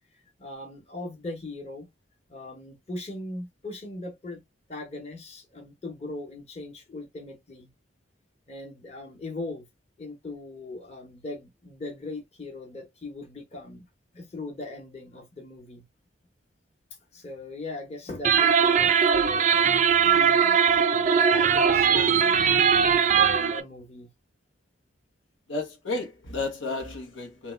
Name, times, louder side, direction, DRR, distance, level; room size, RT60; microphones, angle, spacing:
voice 1, 0.1-1.9 2.3-4.4 4.7-7.7 8.5-9.7 10.0-13.9 14.1-15.8 17.1-22.3 23.1-24.1, left 2 dB, 35° left, 1.0 m, -39 dB
sound 1, 18.2-23.6, right 7 dB, 40° right, 0.3 m, -20 dB
voice 2, 25.5-27.5, left 3 dB, 85° left, 1.0 m, -32 dB
3.5 x 2.3 x 3.2 m
head